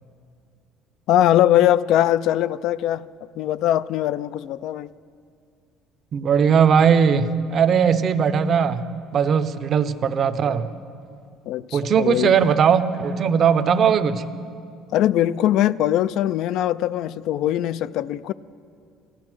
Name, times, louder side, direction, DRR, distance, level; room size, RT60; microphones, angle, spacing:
voice 1, 1.1-3.1 3.4-4.9 11.5-12.3 14.9-18.3, left 12 dB, 60° left, 0.3 m, -21 dB
voice 2, 6.1-8.9 9.1-10.7 11.7-14.2, right 7 dB, 35° right, 0.6 m, -19 dB
17.0 x 13.5 x 6.1 m
cardioid pair, 155°, 0 cm